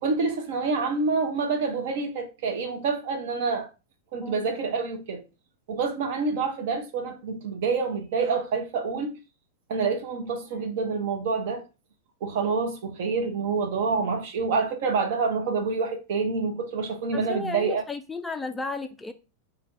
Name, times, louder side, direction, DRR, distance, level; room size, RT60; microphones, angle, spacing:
voice 1, 0.0-3.7 4.1-5.2 5.7-9.2 9.7-11.6 12.2-17.8, right 4 dB, 55° right, 0.7 m, -27 dB
voice 2, 17.1-19.1, left 3 dB, 10° left, 0.3 m, -34 dB
2.5 x 2.5 x 3.1 m
figure-of-eight pair, 90°, 0 cm